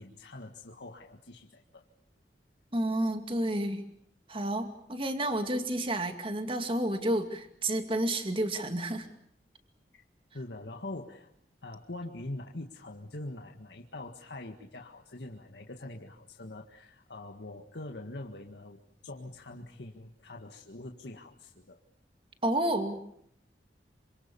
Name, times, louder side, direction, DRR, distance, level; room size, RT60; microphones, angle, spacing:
voice 1, 0.0-1.8 9.9-10.0 10.3-11.3 11.6-21.8, left 2 dB, 80° left, 2 dB, 1.9 m, -44 dB
voice 2, 2.7-3.8 4.3-9.1 22.4-23.0, right 1 dB, 30° right, 6 dB, 2.4 m, -30 dB
27.5 x 26.0 x 7.0 m, 0.71 s
head